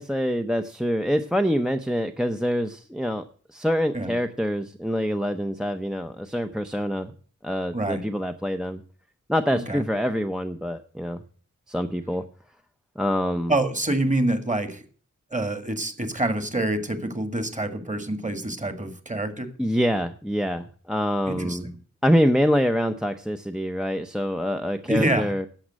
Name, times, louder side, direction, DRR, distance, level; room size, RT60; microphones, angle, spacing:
voice 1, 0.0-3.2 3.5-7.1 7.4-8.8 9.3-11.2 11.7-12.2 13.0-13.5 19.6-21.7 22.0-25.5, equal, ahead, 6 dB, 0.6 m, -25 dB
voice 2, 7.7-8.0 9.5-9.8 13.5-14.9 15.3-19.5 21.3-21.7 24.9-25.3, right 1 dB, 25° right, 9 dB, 1.7 m, -26 dB
11.5 x 7.2 x 7.5 m, 0.44 s
wide cardioid pair, 95°, 31 cm